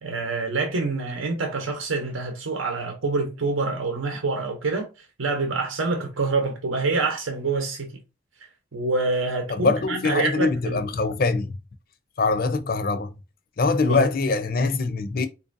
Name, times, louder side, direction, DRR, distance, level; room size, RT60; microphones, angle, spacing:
voice 1, 0.0-4.9 5.2-8.0 8.7-10.8 13.9-14.1, right 3 dB, 85° right, 0.8 m, -26 dB
voice 2, 9.5-11.5 12.2-13.1 13.6-15.3, left 3 dB, 50° left, 0.5 m, -23 dB
4.2 x 2.7 x 2.5 m
head